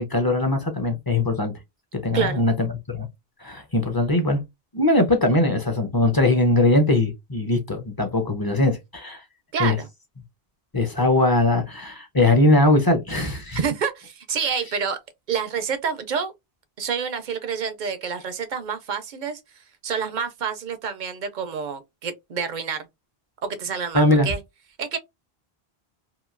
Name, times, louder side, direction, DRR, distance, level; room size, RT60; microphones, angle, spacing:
voice 1, 0.0-1.5 1.9-3.1 3.4-4.4 4.7-9.2 9.6-9.8 10.7-13.6 23.9-24.3, left 2 dB, 25° left, 0.6 m, -20 dB
voice 2, 9.5-9.9 13.5-15.0 15.3-16.3 16.8-19.4 19.8-22.9 23.4-24.4 24.8-25.0, right 6 dB, 55° right, 0.6 m, -28 dB
2.9 x 2.4 x 2.4 m
omnidirectional pair, 1.1 m